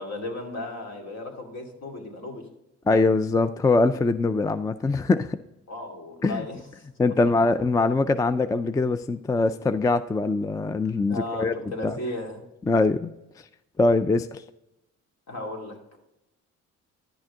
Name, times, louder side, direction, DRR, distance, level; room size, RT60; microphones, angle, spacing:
voice 1, 0.0-2.4 5.7-6.6 11.1-12.4 15.3-15.8, left 1 dB, 60° left, 1 dB, 2.4 m, -35 dB
voice 2, 2.9-5.4 6.2-6.5 7.0-11.5 11.8-12.0 12.7-13.1 13.8-14.4, left 3 dB, 10° left, 12 dB, 0.3 m, -22 dB
10.5 x 6.4 x 3.6 m, 0.89 s
cardioid pair, 90°, 30 cm